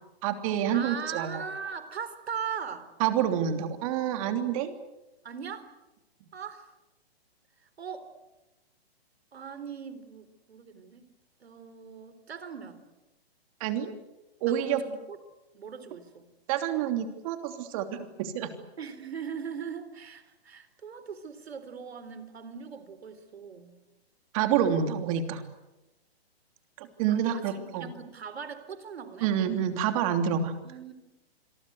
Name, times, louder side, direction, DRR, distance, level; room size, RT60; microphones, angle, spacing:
voice 1, 0.2-1.4 3.0-4.7 13.6-13.9 14.4-14.8 16.5-18.5 24.3-25.4 26.8-27.9 29.2-30.5, right 9 dB, 35° right, 7 dB, 3.1 m, -28 dB
voice 2, 0.7-2.9 5.2-5.7 6.3-6.7 7.6-8.1 9.3-11.0 11.4-12.8 14.5-15.2 15.5-16.3 18.8-23.8 24.6-24.8 27.1-29.3 30.6-30.9, right 6 dB, 75° right, 12 dB, 4.0 m, -40 dB
27.0 x 23.0 x 8.0 m, 1.0 s
hypercardioid pair, 150°, 32 cm